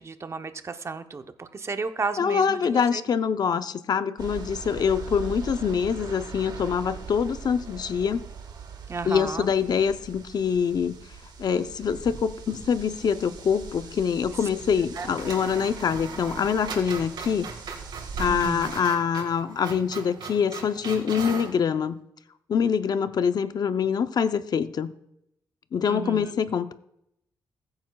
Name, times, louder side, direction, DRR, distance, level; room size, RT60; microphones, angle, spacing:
voice 1, 0.0-3.0 8.9-9.5 15.0-15.1 18.3-18.7 25.9-26.3, right 4 dB, 35° right, 8 dB, 0.8 m, -33 dB
voice 2, 2.2-8.2 9.0-11.0 11.4-17.5 18.2-22.0 22.5-24.9 25.7-26.7, left 7 dB, 55° left, 11 dB, 0.6 m, -25 dB
sound 1, 4.2-18.8, right 5 dB, 60° right, 1.3 m, -41 dB
sound 2, 11.8-12.7 12.9-13.0 14.5-14.7 14.9-21.6, right 5 dB, 75° right, 3.3 m, -39 dB
21.5 x 8.8 x 2.3 m, 0.78 s
cardioid pair, 100°, 8 cm